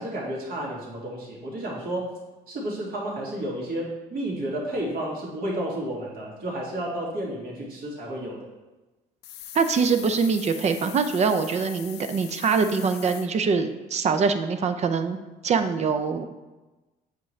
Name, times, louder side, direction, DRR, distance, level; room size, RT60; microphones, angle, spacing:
voice 1, 0.0-2.2 2.5-8.5, right 1 dB, 60° right, -4 dB, 2.3 m, -31 dB
sound 1, 9.2-13.3, left 11 dB, 80° left, 0.5 m, -41 dB
voice 2, 9.5-15.2 15.4-16.2, right 5 dB, 40° right, 9 dB, 0.6 m, -23 dB
8.1 x 4.9 x 3.2 m, 1.1 s
cardioid pair, 110°, 17 cm